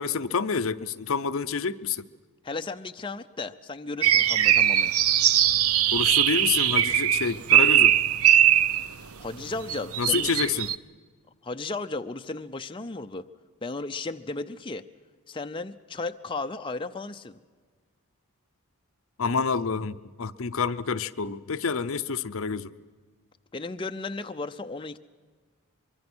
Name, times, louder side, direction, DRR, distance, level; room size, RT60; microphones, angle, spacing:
voice 1, 0.0-2.0 5.9-8.0 10.0-10.7 19.2-22.7, left 5 dB, 60° left, 0.7 m, -28 dB
voice 2, 2.4-4.9 9.2-10.3 11.4-13.3 13.6-14.8 15.3-17.4 23.5-25.0, left 3 dB, 20° left, 0.6 m, -35 dB
sound 1, 4.0-8.9 9.7-10.7, right 11 dB, 70° right, 0.7 m, -20 dB
24.0 x 23.5 x 6.2 m
head